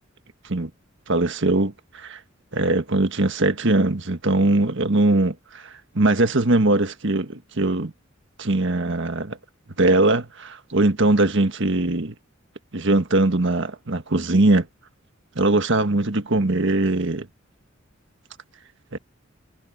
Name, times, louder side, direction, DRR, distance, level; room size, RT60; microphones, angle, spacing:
voice 1, 1.1-2.2 2.5-7.9 8.4-9.4 9.8-12.1 12.7-14.7 15.3-17.3 18.9-19.0, right 2 dB, 65° right, 1.5 m, -21 dB
head